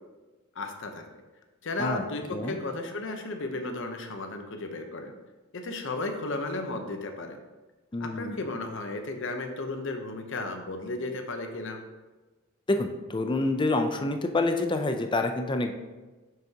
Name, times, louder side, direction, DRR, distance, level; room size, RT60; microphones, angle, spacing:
voice 1, 0.6-1.0 1.6-5.1 5.5-7.4 8.0-11.8, left 2 dB, 60° left, 5 dB, 0.8 m, -34 dB
voice 2, 7.9-8.4 12.7-15.7, left 2 dB, 25° left, 5 dB, 0.4 m, -27 dB
6.8 x 6.4 x 2.8 m, 1.2 s
head